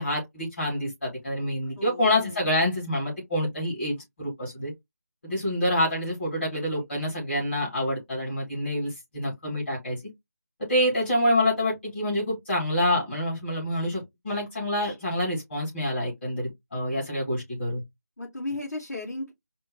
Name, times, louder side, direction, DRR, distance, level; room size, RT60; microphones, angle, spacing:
voice 1, 0.0-4.7 5.2-10.0 10.6-17.8, left 1 dB, 40° left, 2.5 m, -27 dB
voice 2, 1.7-2.4 18.2-19.3, left 2 dB, 60° left, 2.8 m, -35 dB
4.4 x 2.0 x 3.9 m
figure-of-eight pair, 170°, 9 cm